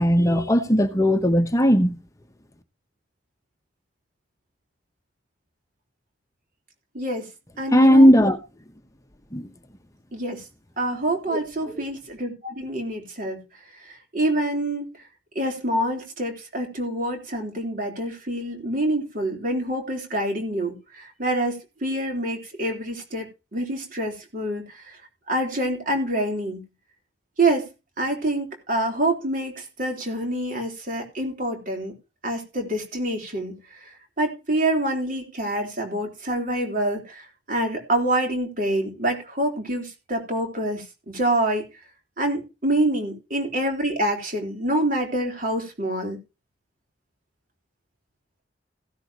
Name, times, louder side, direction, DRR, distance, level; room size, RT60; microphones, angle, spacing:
voice 1, 0.0-2.0 7.7-8.4 9.3-9.5 11.3-11.4, equal, 20° left, 0.9 m, -17 dB
voice 2, 6.9-7.3 7.6-8.1 10.1-10.4 10.8-13.4 13.8-14.9 15.4-25.0 25.3-26.6 27.4-27.7 28.0-31.9 32.2-41.6 42.2-46.2, right 1 dB, 50° right, 3.7 m, -26 dB
16.0 x 10.5 x 2.9 m
head